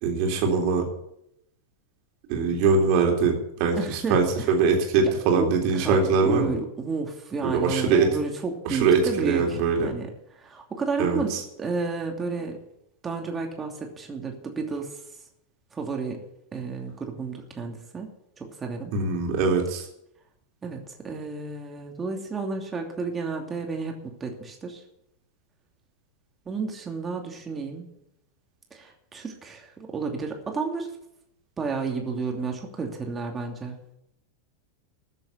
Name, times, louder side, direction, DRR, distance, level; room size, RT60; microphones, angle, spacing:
voice 1, 0.0-0.8 2.3-6.6 7.4-8.1 8.6-9.9 11.0-11.4 18.9-19.8, right 5 dB, 45° right, 1 dB, 3.6 m, -22 dB
voice 2, 3.8-4.5 5.0-12.6 13.0-15.0 15.7-16.2 16.5-18.9 20.6-24.8 26.5-27.9 28.7-30.9 31.6-33.8, right 4 dB, 20° right, 2 dB, 2.9 m, -32 dB
14.0 x 7.7 x 8.6 m, 0.80 s
figure-of-eight pair, 90°, 0 cm